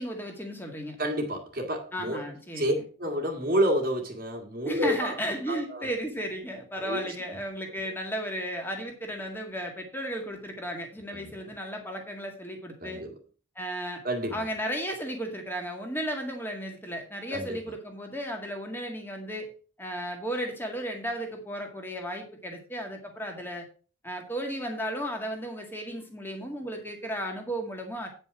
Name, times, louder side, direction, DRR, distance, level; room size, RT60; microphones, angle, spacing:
voice 1, 0.0-1.0 1.9-2.8 4.7-13.0 13.6-14.0 14.3-19.5 19.8-23.6 24.0-28.1, equal, 10° left, 2 dB, 2.0 m, -34 dB
voice 2, 1.0-2.3 2.6-5.1 5.5-5.9 6.8-7.0 11.1-11.3 12.8-13.1 14.0-14.5 17.3-17.6, equal, 45° right, 2 dB, 1.9 m, -29 dB
9.3 x 5.5 x 5.9 m, 0.38 s
head